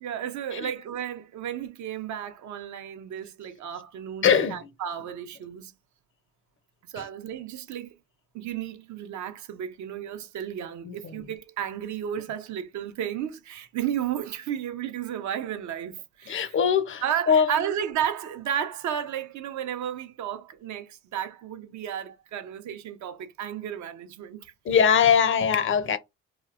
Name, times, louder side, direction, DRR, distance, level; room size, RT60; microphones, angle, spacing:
voice 1, 0.0-5.7 6.9-7.9 8.3-16.6 17.0-24.5, right 9 dB, 70° right, 0.6 m, -33 dB
voice 2, 4.2-4.7 7.0-7.1 10.8-11.3 16.3-17.7 24.6-26.0, left 7 dB, 40° left, 0.5 m, -22 dB
2.9 x 2.1 x 2.4 m
cardioid pair, 90°, 30 cm